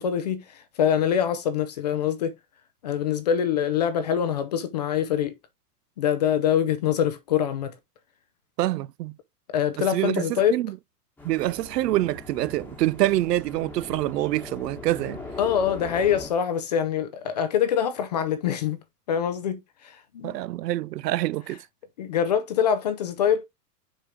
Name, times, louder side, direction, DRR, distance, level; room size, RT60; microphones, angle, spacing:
voice 1, 0.0-2.3 2.8-5.3 6.0-7.8 9.5-10.6 15.4-20.4 22.0-23.5, left 9 dB, 30° left, 0.4 m, -24 dB
voice 2, 8.6-9.1 9.9-10.7 11.2-15.2 20.2-21.6, right 16 dB, 85° right, 0.6 m, -26 dB
sound 1, 11.2-16.3, left 2 dB, 5° left, 1.1 m, -40 dB
6.4 x 4.6 x 3.5 m
supercardioid pair, 165°, 47 cm